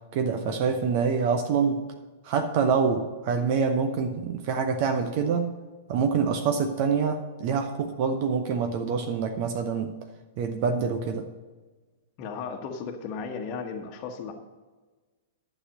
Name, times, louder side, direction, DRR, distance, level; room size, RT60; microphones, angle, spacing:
voice 1, 0.1-1.8 2.2-5.5 5.9-9.9 10.4-11.3, right 5 dB, 45° right, 7 dB, 0.8 m, -26 dB
voice 2, 12.2-14.3, left 5 dB, 35° left, 2 dB, 1.3 m, -35 dB
11.5 x 6.3 x 6.6 m, 1.3 s
figure-of-eight pair, 105°, 0 cm